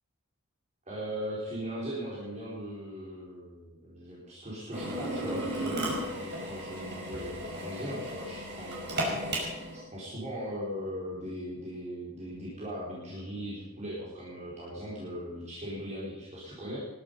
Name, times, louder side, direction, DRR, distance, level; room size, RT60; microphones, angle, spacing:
voice 1, 0.9-8.9 9.7-16.8, equal, 30° right, -7 dB, 4.4 m, -39 dB
Drill, 4.7-9.8, right 1 dB, 50° right, 5.5 m, -35 dB
20.0 x 11.5 x 5.4 m, 1.1 s
head